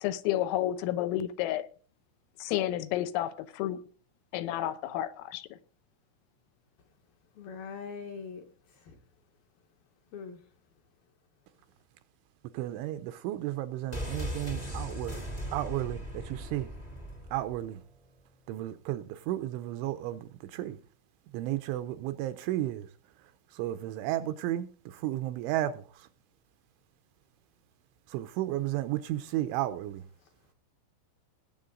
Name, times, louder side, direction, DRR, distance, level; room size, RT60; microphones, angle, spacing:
voice 1, 0.0-1.7 2.4-3.8 4.3-5.5, left 13 dB, 85° left, 3.5 m, -31 dB
voice 2, 7.4-8.4 8.7-9.0 10.1-10.4, left 5 dB, 65° left, 2.5 m, -42 dB
voice 3, 12.5-15.2 15.5-16.7 17.3-17.8 18.5-20.8 21.3-22.9 23.5-26.1 28.1-30.0, right 14 dB, 80° right, 2.8 m, -33 dB
sound 1, 13.9-17.7 17.9-18.0, equal, 35° left, 0.6 m, -38 dB
18.0 x 8.2 x 3.8 m
omnidirectional pair, 5.9 m